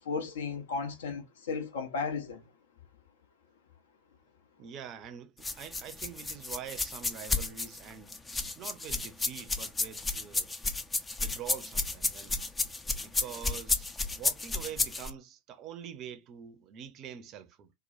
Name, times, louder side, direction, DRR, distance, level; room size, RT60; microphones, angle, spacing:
voice 1, 0.0-2.5, left 5 dB, 60° left, 0.9 m, -35 dB
voice 2, 4.6-8.2 8.6-10.5 11.2-12.3 13.0-17.7, right 9 dB, 35° right, 0.6 m, -45 dB
sound 1, 5.4-15.1, left 3 dB, 10° left, 0.4 m, -32 dB
4.3 x 2.1 x 2.7 m
figure-of-eight pair, 90°, 0 cm